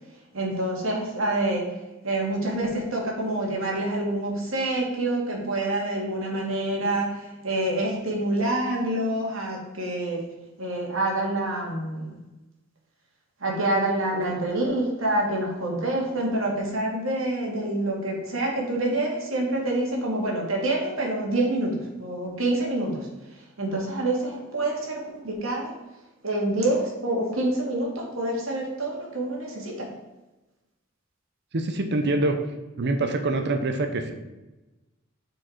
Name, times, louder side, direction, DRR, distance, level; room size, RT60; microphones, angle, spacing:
voice 1, 0.3-1.7 2.0-10.2 10.6-12.0 13.4-23.1 23.6-25.7 26.2-29.9, right 1 dB, 75° right, -1 dB, 1.9 m, -27 dB
voice 2, 31.5-32.4 32.8-34.1, right 2 dB, 55° right, 6 dB, 0.7 m, -25 dB
6.4 x 4.8 x 4.4 m, 1.1 s
head